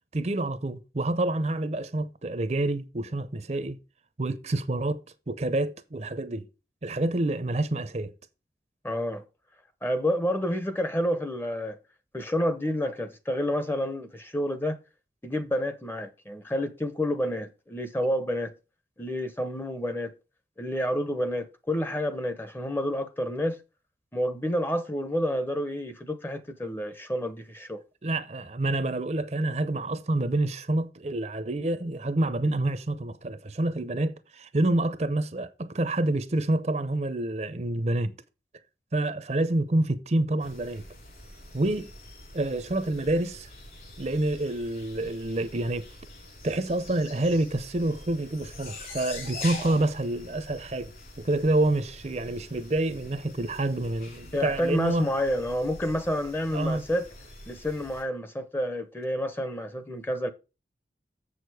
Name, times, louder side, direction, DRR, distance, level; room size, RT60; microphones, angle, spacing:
voice 1, 0.1-3.8 4.2-5.0 5.3-6.5 6.8-8.1 28.0-38.1 38.9-40.8 41.5-41.9 42.3-43.5 44.0-45.9 46.4-55.1 56.5-56.8, right 2 dB, 40° right, 0.6 m, -28 dB
voice 2, 8.8-9.2 9.8-11.8 12.1-14.8 15.2-18.5 19.0-20.1 20.6-23.6 24.1-27.8 54.3-57.1 57.5-60.3, equal, 10° left, 0.7 m, -29 dB
sound 1, 40.4-58.0, left 2 dB, 55° left, 3.5 m, -45 dB
7.3 x 6.5 x 4.7 m
head